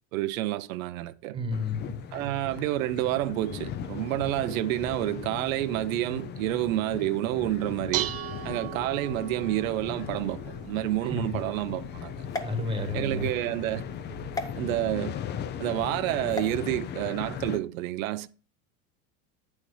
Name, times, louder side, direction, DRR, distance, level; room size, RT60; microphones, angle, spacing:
voice 1, 0.1-1.4 2.1-8.1 8.4-12.2 12.9-13.8 14.5-15.2 15.6-18.3, right 15 dB, 90° right, 0.6 m, -29 dB
voice 2, 1.3-2.0 11.1-11.3 12.4-13.3, left 2 dB, 15° right, 1.3 m, -31 dB
sound 1, 1.5-17.6, left 9 dB, 30° left, 0.4 m, -38 dB
Dishes pots and pans, 7.5-14.9, right 13 dB, 40° right, 0.6 m, -40 dB
sound 2, 12.3-13.3 14.3-14.5 16.3-16.6, left 3 dB, 10° left, 0.8 m, -36 dB
8.6 x 6.3 x 3.2 m
supercardioid pair, 125°, 39 cm